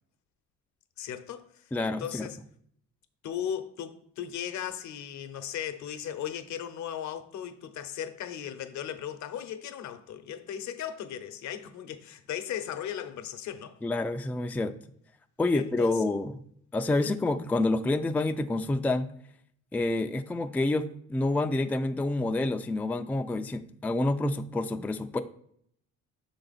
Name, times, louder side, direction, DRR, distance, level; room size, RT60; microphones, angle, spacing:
voice 1, 1.0-2.4 3.2-13.8 15.5-16.0 16.9-17.1, left 9 dB, 70° left, 0.7 m, -37 dB
voice 2, 1.7-2.3 13.8-14.7 15.4-16.4 16.7-19.1 19.7-25.2, left 2 dB, 5° left, 0.3 m, -28 dB
6.0 x 3.9 x 4.0 m
cardioid pair, 90°, 30 cm